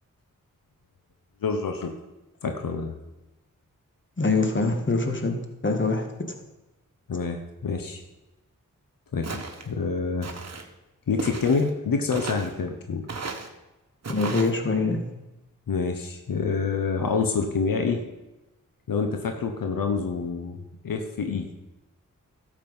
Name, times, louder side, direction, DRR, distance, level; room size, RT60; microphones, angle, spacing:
voice 1, 1.4-1.9 2.4-2.9 7.1-8.0 9.1-10.3 11.1-13.1 15.7-18.0 18.9-20.6 20.8-21.5, left 5 dB, 85° left, 5 dB, 1.1 m, -27 dB
voice 2, 4.2-5.4 5.6-6.1 14.1-15.0, left 3 dB, 35° left, 5 dB, 1.9 m, -24 dB
Walk footsteps, 9.2-9.7 10.2-10.7 11.2-11.7 12.1-12.5 13.1-13.5 14.0-14.5, right 4 dB, 50° right, 1.4 m, -34 dB
12.0 x 7.4 x 5.5 m, 1.0 s
cardioid pair, 50°, 33 cm